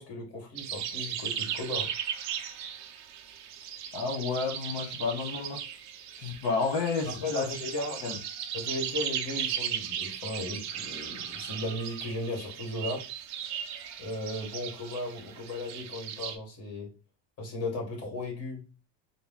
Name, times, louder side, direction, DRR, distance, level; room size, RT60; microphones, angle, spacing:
voice 1, 0.0-1.9 7.1-8.0 8.5-13.1 14.0-16.9 17.4-18.6, left 1 dB, 35° left, 2.1 m, -36 dB
sound 1, 0.6-16.4, right 9 dB, 45° right, 0.6 m, -37 dB
voice 2, 3.9-5.6 6.2-7.7 8.0-8.2, left 4 dB, 65° left, 1.2 m, -31 dB
3.9 x 2.1 x 3.7 m
cardioid pair, 140°, 41 cm